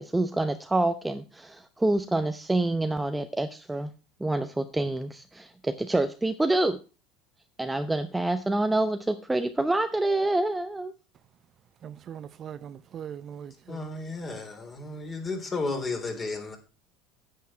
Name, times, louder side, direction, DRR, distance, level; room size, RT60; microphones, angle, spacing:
voice 1, 0.0-3.9 4.2-6.8 7.6-10.9, right 2 dB, 10° right, 0.8 m, -27 dB
voice 2, 11.8-13.8, right 9 dB, 45° right, 0.6 m, -41 dB
voice 3, 13.7-16.6, left 3 dB, 30° left, 3.5 m, -33 dB
9.3 x 8.5 x 4.4 m
hypercardioid pair, 80°, 0 cm